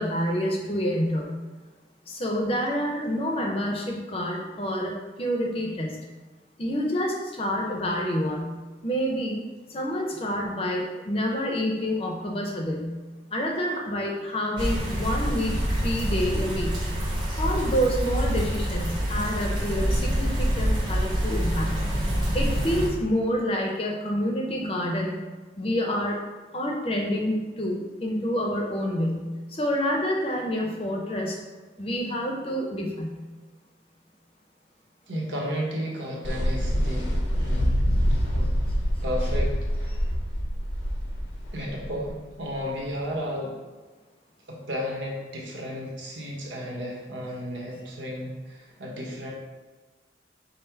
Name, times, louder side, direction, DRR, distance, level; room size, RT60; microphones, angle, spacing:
voice 1, 0.0-1.3 2.1-6.0 6.6-8.5 8.8-13.0 13.3-16.8 17.4-21.8 22.3-25.2 25.6-26.2 26.5-31.4 31.8-33.2, equal, 30° left, 0 dB, 0.6 m, -28 dB
sound 1, 14.6-22.9, equal, 25° right, 1.0 m, -26 dB
voice 2, 35.1-38.6 39.0-40.0 41.5-43.5 44.5-49.3, equal, 85° right, -2 dB, 1.1 m, -33 dB
sound 2, 36.2-42.9, equal, 85° left, 0.8 m, -26 dB
5.4 x 2.1 x 4.4 m, 1.3 s
head